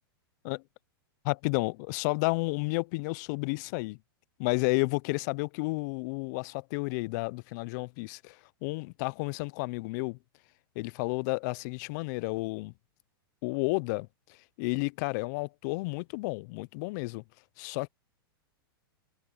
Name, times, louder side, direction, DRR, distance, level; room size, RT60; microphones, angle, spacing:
voice 1, 1.2-4.0 4.4-8.4 8.6-10.2 10.8-12.7 13.4-14.1 14.6-17.2 17.6-17.9, left 27 dB, 50° left, 0.5 m, -31 dB
hypercardioid pair, 125°, 12 cm